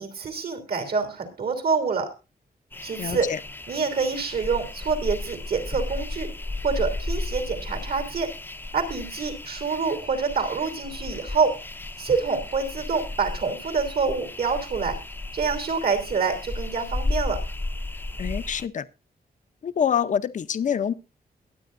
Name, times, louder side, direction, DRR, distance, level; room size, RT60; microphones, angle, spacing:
voice 1, 0.0-2.1 2.8-3.3 3.7-6.3 6.6-8.3 8.7-11.5 12.0-15.0 15.3-17.4, right 5 dB, 70° right, 7 dB, 3.0 m, -26 dB
sound 1, 2.7-18.7, left 2 dB, 10° left, 0.6 m, -34 dB
voice 2, 3.0-3.4 18.2-18.9 19.6-20.9, left 8 dB, 50° left, 13 dB, 0.6 m, -26 dB
22.5 x 8.9 x 2.5 m, 0.29 s
wide cardioid pair, 140°, 16 cm